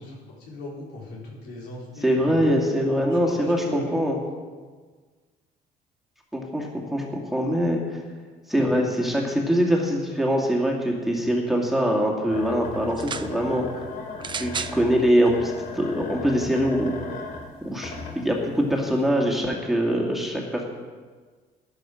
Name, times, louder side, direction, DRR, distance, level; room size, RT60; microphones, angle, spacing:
voice 1, 0.0-4.0, left 2 dB, 85° left, -3 dB, 4.0 m, -37 dB
voice 2, 2.0-4.2 6.3-7.0 7.3-8.0 8.5-13.8 14.4-16.9 17.6-20.6, equal, ahead, -1 dB, 2.2 m, -23 dB
sound 1, 12.3-18.6 19.0-19.1, left 4 dB, 65° left, 2.8 m, -37 dB
sound 2, 12.9-13.3 14.2-14.8 15.7-15.8, right 6 dB, 30° right, 0.5 m, -32 dB
13.0 x 11.0 x 5.1 m, 1.5 s
cardioid pair, 110°, 17 cm